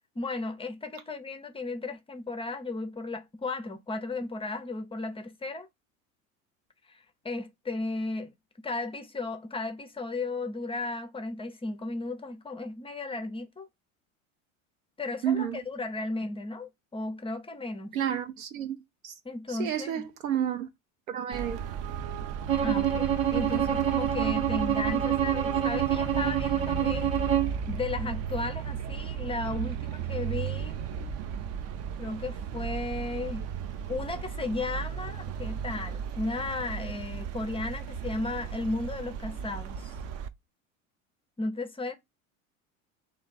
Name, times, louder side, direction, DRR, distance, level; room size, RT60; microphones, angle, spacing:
voice 1, 0.2-5.7 7.2-8.3 8.6-13.7 15.0-17.9 19.2-20.1 22.6-27.1 27.7-30.8 32.0-33.4 33.9-39.9 41.4-42.0, left 3 dB, 15° left, 0.5 m, -35 dB
voice 2, 15.2-15.6 17.9-18.8 19.0-19.1 19.5-20.7 21.1-21.6, right 9 dB, 80° right, 0.8 m, -30 dB
Traffic noise roadway noise, 21.3-40.3, right 7 dB, 40° right, 0.5 m, -35 dB
Bowed string instrument, 22.5-27.6, right 10 dB, 60° right, 1.0 m, -27 dB
3.3 x 2.6 x 3.9 m
hypercardioid pair, 75°, 41 cm